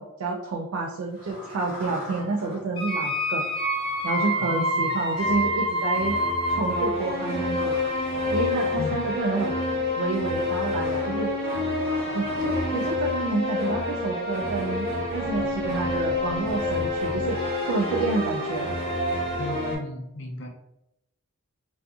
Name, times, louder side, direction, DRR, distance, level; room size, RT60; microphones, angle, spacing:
voice 1, 0.0-3.4 4.0-6.2 6.5-7.8 8.3-9.5 10.0-11.3 12.1-18.7, right 3 dB, 75° right, 0 dB, 0.3 m, -29 dB
sound 1, 1.0-13.0, left 1 dB, 5° right, 1.1 m, -45 dB
sound 2, 2.8-19.8, left 1 dB, 25° left, 0.9 m, -27 dB
voice 2, 4.4-5.0 8.8-9.1 19.4-20.5, left 1 dB, 55° left, 2 dB, 0.4 m, -35 dB
sound 3, 15.0-17.8, equal, 40° right, 1.2 m, -43 dB
2.6 x 2.4 x 2.3 m, 0.85 s
head